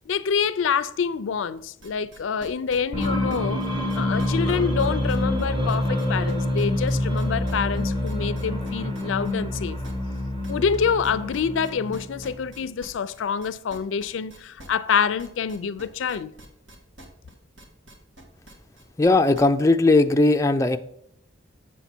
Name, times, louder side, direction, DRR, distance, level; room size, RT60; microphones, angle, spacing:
voice 1, 0.1-3.6 4.0-9.8 10.5-16.3, left 6 dB, 85° left, 0.4 m, -26 dB
sound 1, 1.6-19.7, right 1 dB, 80° right, 1.8 m, -46 dB
sound 2, 2.9-12.5, left 1 dB, 25° right, 1.4 m, -26 dB
voice 2, 19.0-20.8, left 2 dB, 15° left, 0.3 m, -18 dB
7.4 x 7.1 x 4.3 m
head